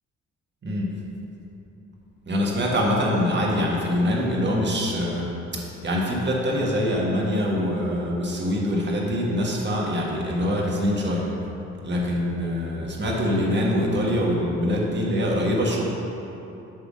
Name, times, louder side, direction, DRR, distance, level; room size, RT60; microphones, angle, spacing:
voice 1, 0.6-1.0 2.3-11.3 11.8-15.8, equal, 35° right, -3 dB, 1.6 m, -24 dB
8.1 x 3.6 x 6.3 m, 2.9 s
cardioid pair, 90°, 30 cm